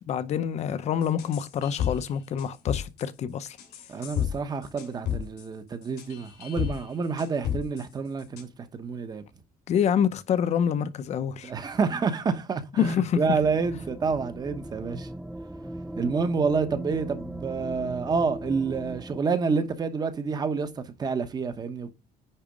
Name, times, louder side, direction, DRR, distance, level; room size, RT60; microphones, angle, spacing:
voice 1, 0.1-3.6 9.7-11.5 12.8-13.2, left 8 dB, 45° left, 0.7 m, -26 dB
sound 1, 1.0-2.1 2.4-3.1 3.6-4.3 4.6-5.5 5.8-6.8 7.2-7.8 8.2-8.4, left 10 dB, 90° left, 3.0 m, -31 dB
voice 2, 3.9-9.2 11.4-15.1 16.0-21.9, right 5 dB, 25° right, 1.0 m, -28 dB
sound 2, 13.2-19.2, right 1 dB, 5° right, 0.3 m, -38 dB
10.0 x 4.1 x 5.2 m
cardioid pair, 180°, 16 cm